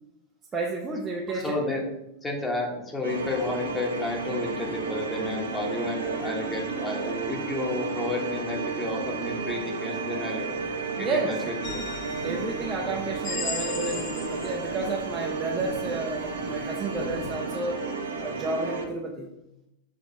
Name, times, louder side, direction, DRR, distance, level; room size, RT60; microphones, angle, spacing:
voice 1, 0.5-1.6 11.0-11.4 12.2-17.8 18.2-19.3, right 3 dB, 20° right, 0 dB, 0.7 m, -31 dB
voice 2, 1.4-1.8 2.2-11.8, left 2 dB, 15° left, 0 dB, 1.3 m, -31 dB
sound 1, 3.0-18.9, right 4 dB, 65° right, 0.8 m, -32 dB
sound 2, 11.6-17.3, left 3 dB, 50° left, 1.2 m, -46 dB
sound 3, 11.6-12.4 13.2-14.7, left 5 dB, 35° left, 1.1 m, -36 dB
6.4 x 3.4 x 4.3 m, 0.90 s
figure-of-eight pair, 90°, 0 cm